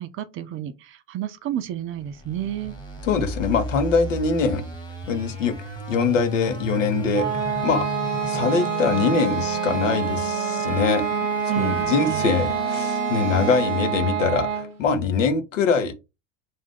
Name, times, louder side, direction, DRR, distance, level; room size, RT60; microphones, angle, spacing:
voice 1, 0.0-2.7 11.5-12.3, right 11 dB, 35° right, 0.4 m, -30 dB
sound 1, 1.8-14.1, left 1 dB, 10° left, 1.1 m, -35 dB
voice 2, 3.0-4.6 5.1-5.6 5.9-7.3 7.6-7.8 8.3-11.0 11.6-15.9, left 5 dB, 85° left, 0.7 m, -23 dB
sound 2, 7.1-14.8, right 8 dB, 80° right, 0.8 m, -26 dB
Wind instrument woodwind instrument, 7.4-12.1, equal, 40° left, 0.8 m, -39 dB
2.6 x 2.4 x 3.4 m
hypercardioid pair, 75°, 37 cm